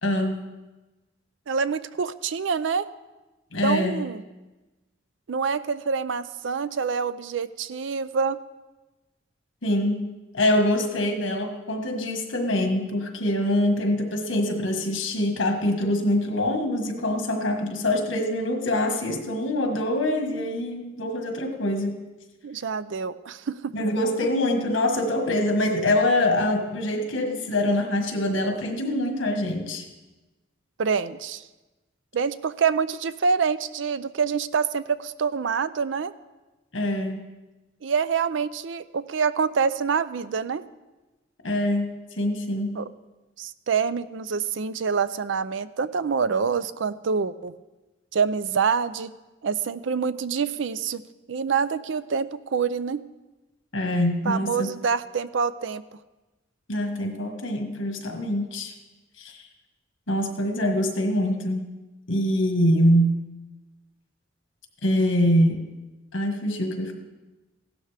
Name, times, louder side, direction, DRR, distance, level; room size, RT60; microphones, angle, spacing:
voice 1, 0.0-0.4 3.5-4.0 9.6-10.0 10.3-21.9 23.7-29.8 36.7-37.2 41.4-42.7 53.7-54.7 56.7-58.7 59.2-59.4 60.1-61.7 62.1-63.2 64.8-65.7 66.1-66.9, left 1 dB, 85° left, 4 dB, 1.6 m, -24 dB
voice 2, 1.5-2.9 3.6-4.2 5.3-8.4 22.4-23.7 30.8-31.4 32.1-36.1 37.8-40.6 42.7-42.9 43.4-47.5 48.1-49.1 49.4-51.0 51.3-53.0 54.3-55.8, right 6 dB, 75° right, 15 dB, 0.5 m, -26 dB
16.0 x 12.0 x 3.4 m, 1.1 s
head